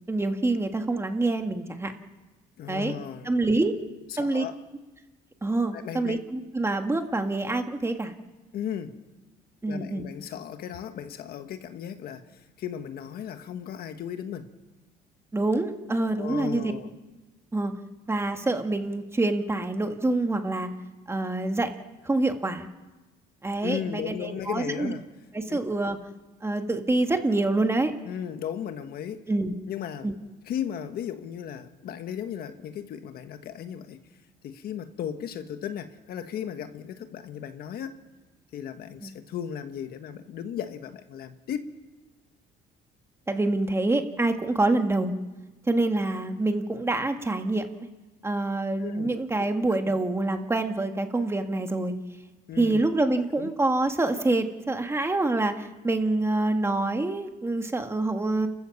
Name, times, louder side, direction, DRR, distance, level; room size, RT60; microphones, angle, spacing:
voice 1, 0.1-1.9 2.7-2.9 3.2-3.8 4.2-4.4 5.4-8.1 9.6-10.0 15.3-16.7 17.5-17.7 18.1-20.7 21.1-21.7 22.0-22.7 23.4-24.9 25.3-26.0 26.4-27.9 29.3-29.5 30.0-30.1 39.0-39.1 43.3-45.1 45.7-47.7 48.2-51.9 52.6-58.5, right 2 dB, 15° right, 6 dB, 1.7 m, -26 dB
voice 2, 2.6-3.3 4.1-4.6 5.7-6.2 8.5-9.0 9.7-14.5 16.1-16.9 23.6-25.1 25.5-25.6 28.0-29.2 29.7-30.1 30.4-34.0 34.4-38.0 38.5-41.7 48.8-49.2 52.5-52.8 53.1-53.5, left 9 dB, 65° left, 8 dB, 1.5 m, -36 dB
29.5 x 14.5 x 7.1 m, 1.2 s
cardioid pair, 110°, 17 cm